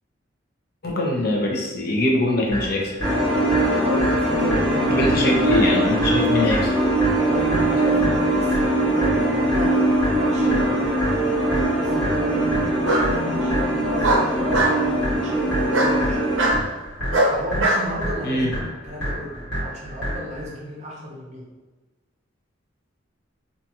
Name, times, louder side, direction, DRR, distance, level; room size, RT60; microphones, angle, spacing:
voice 1, 0.8-2.9 4.9-6.7 18.2-18.6, left 1 dB, 55° left, -1 dB, 0.5 m, -22 dB
sound 1, 2.5-20.5, equal, 70° left, 1.3 m, -30 dB
sound 2, 3.0-16.5, right 1 dB, 5° left, 0.6 m, -21 dB
voice 2, 3.8-5.1 7.1-9.8 10.1-10.9 11.5-16.2 17.3-18.6 18.9-21.5, equal, 35° right, -3 dB, 0.6 m, -33 dB
Bark, 10.7-11.3 12.8-13.1 14.0-14.8 15.7-15.9 16.4-16.6 17.1-17.8, right 1 dB, 75° right, 0.5 m, -20 dB
2.6 x 2.3 x 2.7 m, 1.2 s
head